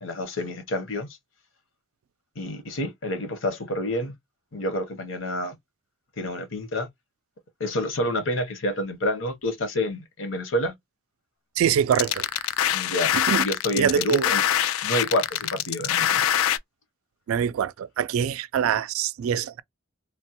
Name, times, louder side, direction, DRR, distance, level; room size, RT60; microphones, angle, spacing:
voice 1, 0.0-1.1 2.4-4.1 4.5-5.5 6.2-6.9 7.6-10.7 12.7-13.1 13.4-14.4 14.8-16.3, left 1 dB, 70° left, 0.9 m, -28 dB
voice 2, 11.6-12.5 13.1-13.4 13.7-14.3 17.3-19.6, right 8 dB, 85° right, 0.3 m, -24 dB
sound 1, 11.9-16.6, left 11 dB, 90° left, 0.3 m, -24 dB
3.3 x 2.2 x 2.8 m
head